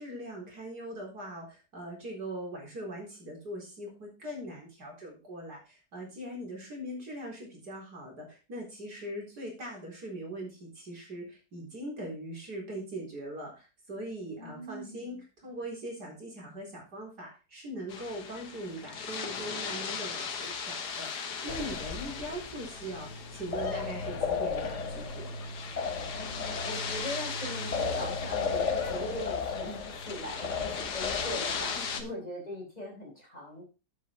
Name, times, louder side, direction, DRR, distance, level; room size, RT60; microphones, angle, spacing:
voice 1, 0.0-25.3 31.7-32.2, right 1 dB, 75° right, -2 dB, 4.7 m, -41 dB
voice 2, 14.4-15.2 26.1-33.6, left 1 dB, 25° left, -2 dB, 4.8 m, -40 dB
sound 1, 17.9-32.0, left 6 dB, 80° left, 1.8 m, -38 dB
sound 2, 21.5-32.1, left 5 dB, 50° left, 1.4 m, -35 dB
8.3 x 8.3 x 4.5 m, 0.31 s
omnidirectional pair, 1.7 m